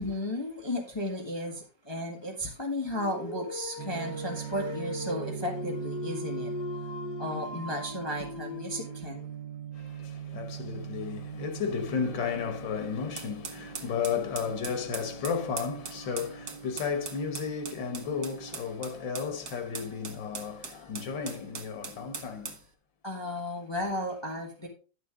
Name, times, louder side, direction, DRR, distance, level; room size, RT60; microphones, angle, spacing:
voice 1, 0.0-6.5 7.2-9.3 23.0-24.7, left 1 dB, 15° left, 1.4 m, -34 dB
Dog, 2.9-9.2, left 4 dB, 65° left, 2.0 m, -39 dB
sound 1, 3.8-18.6, right 9 dB, 90° right, 1.5 m, -42 dB
voice 2, 9.8-22.6, left 6 dB, 85° left, 1.9 m, -33 dB
sound 2, 13.2-22.6, right 5 dB, 55° right, 1.6 m, -41 dB
10.5 x 6.7 x 3.7 m
omnidirectional pair, 2.0 m